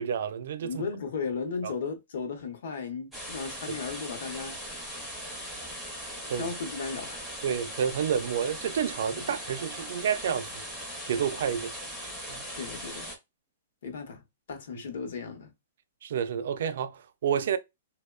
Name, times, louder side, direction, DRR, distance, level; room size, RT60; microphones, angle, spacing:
voice 1, 0.0-0.9 1.6-1.7 6.3-6.5 7.4-10.6 11.1-11.7 12.3-12.5 16.0-17.6, right 8 dB, 55° right, 0.3 m, -29 dB
voice 2, 0.6-4.6 6.3-7.2 9.2-9.3 12.5-13.1 13.8-14.2 14.5-15.5, left 5 dB, 65° left, 0.7 m, -35 dB
sound 1, 3.1-13.2, equal, ahead, 0.5 m, -39 dB
2.9 x 2.1 x 2.2 m
hypercardioid pair, 175°, 0 cm